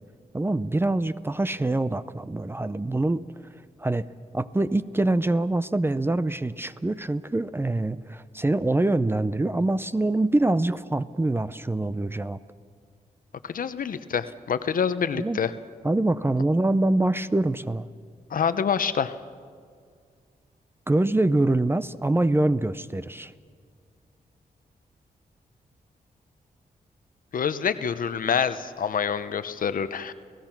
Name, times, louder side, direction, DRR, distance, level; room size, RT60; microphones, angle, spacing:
voice 1, 0.3-3.2 3.8-4.1 4.3-12.4 15.1-15.4 15.8-17.9 20.9-23.3, right 2 dB, 15° right, 14 dB, 0.5 m, -24 dB
voice 2, 13.4-15.5 18.3-19.2 27.3-30.1, left 7 dB, 65° left, 12 dB, 0.9 m, -26 dB
30.0 x 16.5 x 6.0 m, 2.1 s
wide cardioid pair, 100°, 15 cm